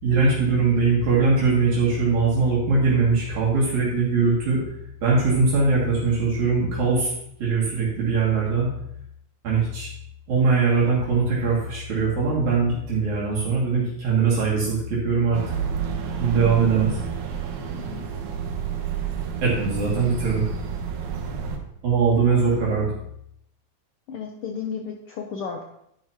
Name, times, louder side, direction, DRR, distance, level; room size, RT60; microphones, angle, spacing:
voice 1, 0.0-4.6 5.0-7.1 7.4-8.7 9.4-9.9 10.3-15.4 16.2-17.0 19.4-20.4 21.8-23.0, right 4 dB, 70° right, -7 dB, 3.7 m, -21 dB
sound 1, 15.3-21.6, right 7 dB, 85° right, 2.6 m, -30 dB
voice 2, 16.4-16.7 17.9-18.0 24.1-25.6, left 6 dB, 75° left, 2 dB, 1.3 m, -33 dB
11.0 x 10.5 x 2.9 m, 0.74 s
omnidirectional pair, 3.4 m